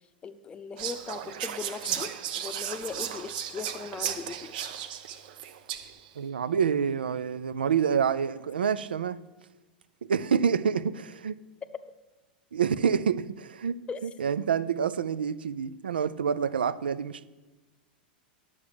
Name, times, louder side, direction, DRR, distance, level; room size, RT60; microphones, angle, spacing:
voice 1, 0.2-4.7 13.9-14.0, left 5 dB, 20° left, 0.7 m, -39 dB
Whispering, 0.8-6.1, right 10 dB, 60° right, 0.8 m, -35 dB
voice 2, 6.2-9.2 10.0-11.4 12.5-17.2, right 7 dB, 80° right, 0.4 m, -27 dB
9.6 x 7.1 x 4.9 m
hypercardioid pair, 95°, 5 cm